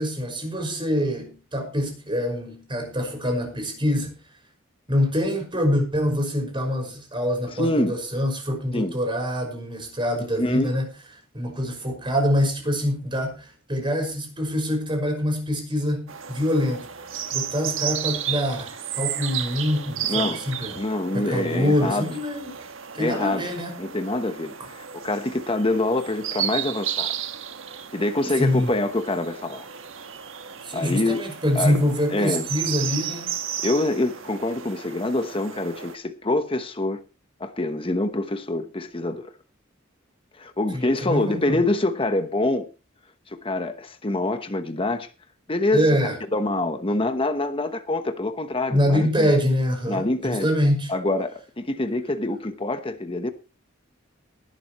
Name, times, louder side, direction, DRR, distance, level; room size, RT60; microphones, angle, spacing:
voice 1, 0.0-4.2 4.9-10.9 11.3-16.9 17.3-20.8 21.1-22.6 22.9-23.7 28.4-28.7 30.6-33.3 40.7-41.6 45.7-46.2 48.7-50.9, equal, 25° right, 5.8 m, -25 dB
voice 2, 7.6-8.0 8.7-8.9 10.4-10.7 20.1-20.4 20.8-22.1 23.0-23.4 23.8-27.1 27.9-29.7 30.7-31.2 31.5-31.8 32.1-32.5 33.6-37.0 37.4-39.3 40.4-42.7 43.3-45.1 45.5-45.9 46.3-49.3 49.9-50.5 50.9-53.3, left 2 dB, 25° left, 1.1 m, -25 dB
sound 1, 16.1-35.9, right 9 dB, 75° right, 1.5 m, -33 dB
19.0 x 12.0 x 3.1 m
head